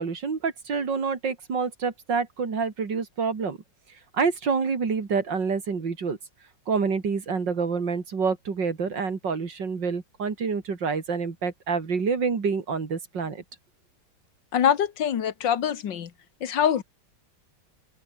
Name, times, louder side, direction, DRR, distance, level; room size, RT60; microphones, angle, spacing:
voice 1, 0.0-3.6 4.1-6.2 6.7-13.4, right 5 dB, 80° right, 3.4 m, -27 dB
voice 2, 14.5-16.1 16.4-16.8, left 9 dB, 85° left, 2.1 m, -24 dB
omnidirectional pair, 1.9 m